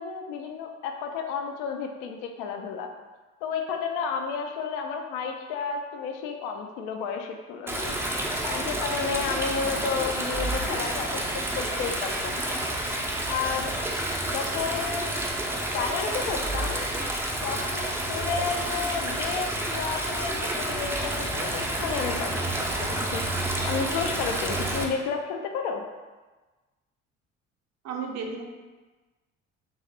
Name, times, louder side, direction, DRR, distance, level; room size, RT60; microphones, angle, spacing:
voice 1, 0.0-2.9 3.4-8.0 8.4-11.2 11.6-12.6 13.3-13.7 14.3-15.1 15.7-16.9 17.4-23.2 23.6-25.9, left 6 dB, 60° left, 4 dB, 0.5 m, -32 dB
Stream, 7.7-24.8, right 1 dB, 5° right, 0.4 m, -29 dB
voice 2, 27.8-28.5, right 5 dB, 45° right, 3 dB, 0.6 m, -33 dB
3.1 x 2.3 x 4.2 m, 1.2 s
figure-of-eight pair, 50°, 38 cm